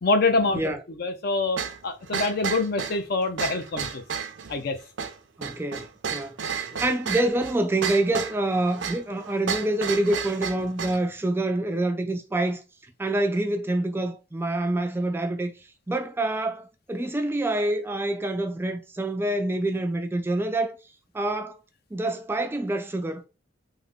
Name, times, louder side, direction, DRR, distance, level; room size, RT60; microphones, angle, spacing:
voice 1, 0.0-1.6 1.8-4.0 4.5-4.8 6.7-6.8, left 3 dB, 55° left, 0.5 m, -25 dB
sound 1, 1.6-11.0, right 6 dB, 70° right, 0.5 m, -32 dB
voice 2, 5.4-12.6 13.0-15.5 15.9-20.8 21.1-21.6 21.9-23.3, right 1 dB, 10° right, 0.3 m, -26 dB
3.5 x 2.1 x 3.5 m
head